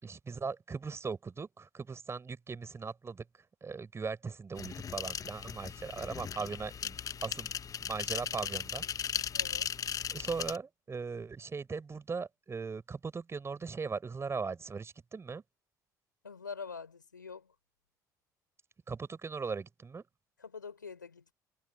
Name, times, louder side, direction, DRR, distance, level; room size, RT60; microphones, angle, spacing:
voice 1, 0.0-3.2 3.6-7.5 7.8-8.8 10.1-15.4 18.9-20.0, right 5 dB, 25° right, 6.5 m, -39 dB
sound 1, 4.6-10.6, left 7 dB, 35° left, 1.3 m, -37 dB
voice 2, 9.3-9.7 16.2-17.5 20.4-21.3, left 5 dB, 85° left, 6.0 m, -45 dB
figure-of-eight pair, 55°, 10 cm